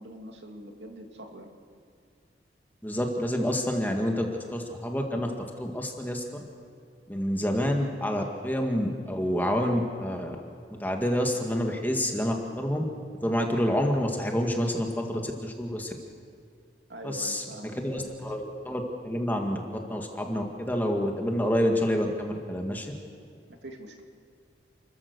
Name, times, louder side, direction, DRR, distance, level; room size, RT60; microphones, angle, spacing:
voice 1, 0.0-1.5 16.9-18.1 23.5-24.0, equal, 75° right, 3 dB, 2.5 m, -43 dB
voice 2, 2.8-5.3 5.6-6.2 7.1-10.4 10.8-12.8 13.2-16.0 17.0-17.4 17.7-19.6 19.9-22.9, equal, 10° left, 2 dB, 1.9 m, -28 dB
29.5 x 14.5 x 6.9 m, 2.2 s
head